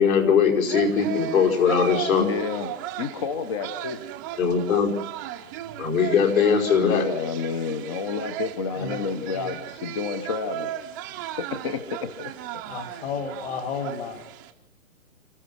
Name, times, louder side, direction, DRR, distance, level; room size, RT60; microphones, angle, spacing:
voice 1, 0.0-2.3 4.4-4.9 5.8-7.0, left 6 dB, 70° left, 0 dB, 5.4 m, -20 dB
sound 1, 0.6-14.5, right 12 dB, 15° right, 0.7 m, -36 dB
voice 2, 2.2-2.7 3.0-4.0 6.8-10.7 11.3-12.3, left 5 dB, 20° left, 11 dB, 0.7 m, -30 dB
voice 3, 8.7-9.5 12.7-14.2, left 5 dB, 45° left, 6 dB, 2.6 m, -33 dB
30.0 x 14.5 x 6.1 m, 0.80 s
hypercardioid pair, 150°, 43 cm